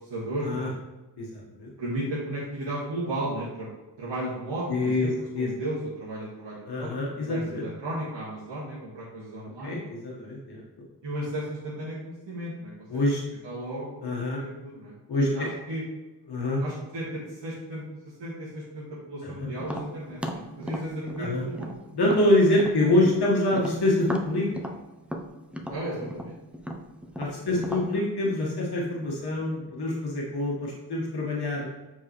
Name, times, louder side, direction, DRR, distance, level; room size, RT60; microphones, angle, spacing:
voice 1, 0.1-0.7 1.8-5.1 5.4-6.9 7.2-9.8 11.0-12.7 13.4-13.9 14.3-15.8 16.6-17.8 18.2-21.7 25.7-26.3 27.4-27.8, right 1 dB, 85° right, -8 dB, 1.7 m, -34 dB
voice 2, 1.2-1.7 4.7-5.5 6.7-7.7 9.6-10.6 12.9-13.2 14.0-14.4 15.1-15.5 16.3-16.6 19.2-19.4 21.2-21.4 21.9-24.5 27.2-31.7, left 1 dB, 65° left, -4 dB, 1.4 m, -25 dB
Tap, 19.6-23.2 23.5-27.9, equal, 5° right, 0.5 m, -36 dB
7.6 x 4.7 x 3.0 m, 1.1 s
wide cardioid pair, 120°, 42 cm